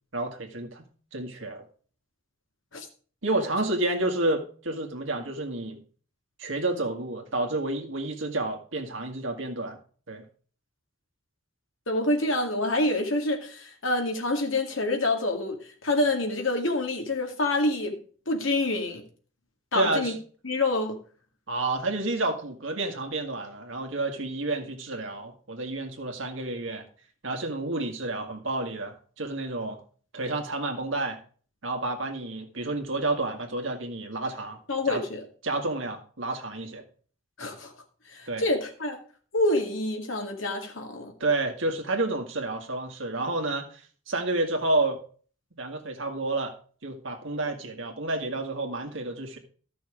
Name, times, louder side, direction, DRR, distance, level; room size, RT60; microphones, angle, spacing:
voice 1, 0.1-0.8 1.1-1.6 3.2-5.8 6.4-9.8 10.1-10.2 19.7-20.2 21.5-26.8 27.2-29.8 30.1-31.2 31.6-34.6 34.9-35.0 35.4-36.8 38.3-38.4 41.2-43.8 44.1-45.0 45.5-46.6 46.8-49.4, right 2 dB, 70° right, 4 dB, 2.0 m, -30 dB
voice 2, 11.9-15.6 15.8-18.0 18.3-19.0 19.7-20.1 20.4-21.0 34.7-35.2 37.4-37.7 38.1-39.0 39.3-41.1, left 2 dB, 70° left, 3 dB, 2.3 m, -27 dB
13.0 x 6.2 x 5.0 m, 0.43 s
head